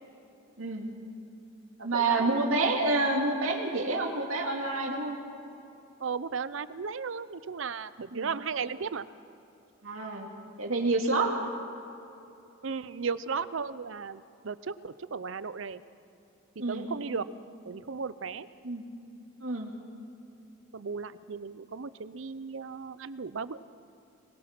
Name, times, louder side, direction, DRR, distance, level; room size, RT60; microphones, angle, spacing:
voice 1, 0.6-0.9 1.8-5.2 8.1-8.3 9.8-10.3 10.6-11.3 16.6-16.9 18.6-18.8 19.4-19.7, right 2 dB, 90° right, 1 dB, 2.6 m, -28 dB
voice 2, 1.9-2.7 6.0-9.0 11.1-11.4 12.6-15.8 16.6-17.2 17.7-18.5 20.7-23.6, right 5 dB, 70° right, 15 dB, 0.6 m, -35 dB
21.5 x 20.5 x 6.0 m, 2.8 s
head